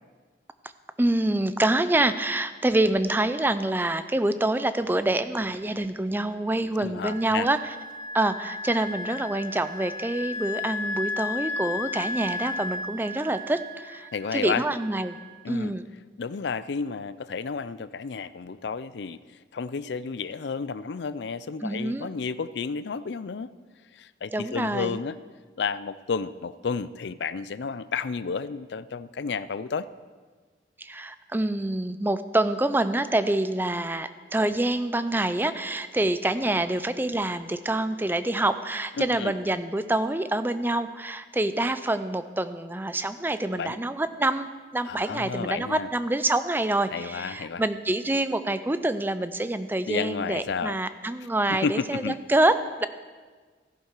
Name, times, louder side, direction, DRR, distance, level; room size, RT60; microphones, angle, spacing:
voice 1, 1.0-7.7 8.1-15.2 15.5-15.8 21.6-22.1 24.3-25.0 30.8-52.9, right 1 dB, 10° right, 11 dB, 0.4 m, -26 dB
voice 2, 6.8-7.5 14.1-14.6 15.4-15.7 16.2-19.2 19.5-23.5 23.9-25.2 25.6-29.9 39.0-39.3 43.5-43.8 44.9-45.9 46.9-47.6 49.9-50.7 51.5-52.2, left 5 dB, 70° left, 16 dB, 0.4 m, -31 dB
Wind instrument woodwind instrument, 7.0-15.3, left 3 dB, 45° right, 1.0 m, -35 dB
14.5 x 11.5 x 4.6 m, 1.5 s
head